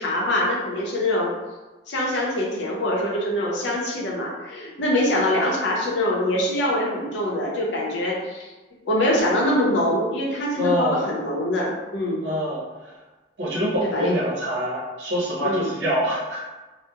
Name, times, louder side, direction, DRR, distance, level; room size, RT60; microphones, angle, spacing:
voice 1, 0.0-1.3 1.9-8.5 8.8-12.2 13.8-14.1 15.4-15.7, left 1 dB, 70° left, -2 dB, 0.6 m, -24 dB
voice 2, 10.6-11.1 12.2-12.9 13.4-16.4, equal, 70° right, -5 dB, 0.7 m, -25 dB
2.7 x 2.0 x 2.2 m, 1.2 s
head